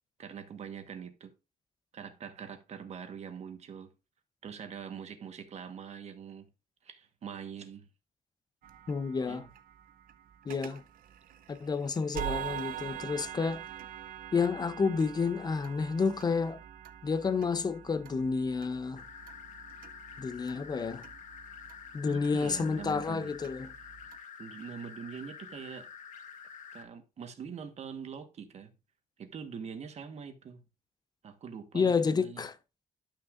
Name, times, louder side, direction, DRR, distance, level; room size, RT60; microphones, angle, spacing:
voice 1, 0.2-1.3 1.9-3.9 4.4-6.5 6.8-7.8 9.3-9.5 12.6-12.7 22.1-23.3 24.4-25.9 26.7-28.7 29.2-30.6 31.2-32.4, right 7 dB, 50° right, 1.4 m, -43 dB
sound 1, 8.6-24.2, right 10 dB, 80° right, 0.6 m, -45 dB
voice 2, 8.9-9.5 10.5-10.8 11.5-13.7 14.3-16.6 17.0-19.0 20.2-21.1 21.9-23.7 31.7-32.6, left 5 dB, 30° left, 0.7 m, -30 dB
sound 2, 19.0-26.8, left 7 dB, 60° left, 1.3 m, -48 dB
12.0 x 6.0 x 2.5 m
cardioid pair, 125°, 14 cm